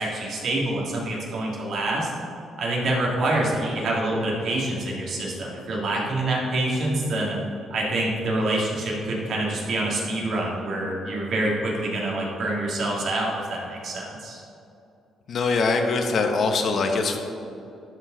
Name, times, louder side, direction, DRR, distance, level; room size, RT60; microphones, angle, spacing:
voice 1, 0.0-2.1 2.6-7.4 7.7-14.4, right 1 dB, 65° right, -3 dB, 2.0 m, -26 dB
voice 2, 15.3-17.2, left 4 dB, 60° left, 4 dB, 0.8 m, -23 dB
12.5 x 4.6 x 3.8 m, 2.7 s
cardioid pair, 90°, 0 cm